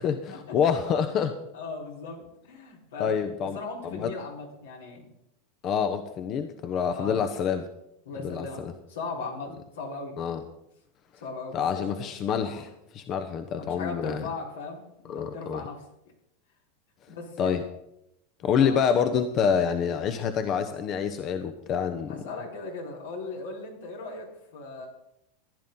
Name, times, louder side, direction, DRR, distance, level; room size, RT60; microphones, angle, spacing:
voice 1, 0.0-1.4 3.0-3.6 3.9-4.1 5.6-7.7 8.2-8.7 10.2-10.4 11.5-14.3 15.1-15.6 17.4-17.6 18.4-22.1, left 7 dB, 45° left, 8 dB, 0.9 m, -27 dB
voice 2, 1.5-3.2 3.5-5.1 6.9-7.2 8.0-10.1 11.2-12.1 13.6-15.9 17.1-17.6 18.5-18.9 22.1-24.9, left 3 dB, 85° left, -1 dB, 4.1 m, -38 dB
15.0 x 10.5 x 3.9 m, 0.82 s
hypercardioid pair, 110°, 0 cm